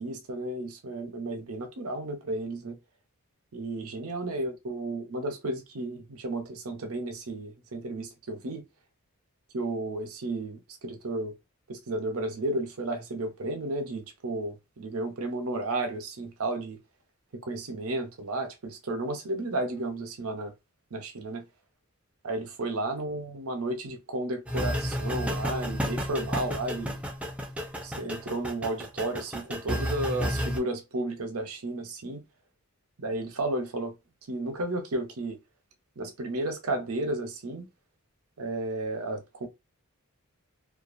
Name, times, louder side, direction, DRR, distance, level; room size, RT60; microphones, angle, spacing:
voice 1, 0.0-2.8 3.5-8.6 9.5-11.3 11.7-16.8 17.3-20.5 20.9-21.4 22.2-27.0 27.8-32.2 33.0-33.9 34.3-35.4 36.0-37.7 38.4-39.5, right 2 dB, 75° right, 0.7 m, -33 dB
sound 1, 24.5-30.6, equal, 5° right, 0.4 m, -32 dB
2.6 x 2.3 x 2.5 m
head